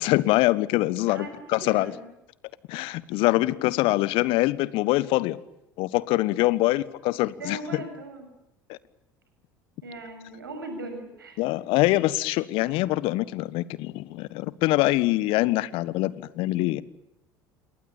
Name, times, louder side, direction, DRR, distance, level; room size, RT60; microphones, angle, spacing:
voice 1, 0.0-1.9 2.7-5.4 5.8-7.8 8.7-8.8 11.4-16.8, left 18 dB, 55° left, 19 dB, 1.4 m, -24 dB
voice 2, 1.1-2.1 6.6-6.8 7.1-8.3 9.8-11.4, right 2 dB, 85° right, 6 dB, 7.4 m, -39 dB
28.5 x 22.0 x 8.9 m, 0.87 s
figure-of-eight pair, 65°, 11 cm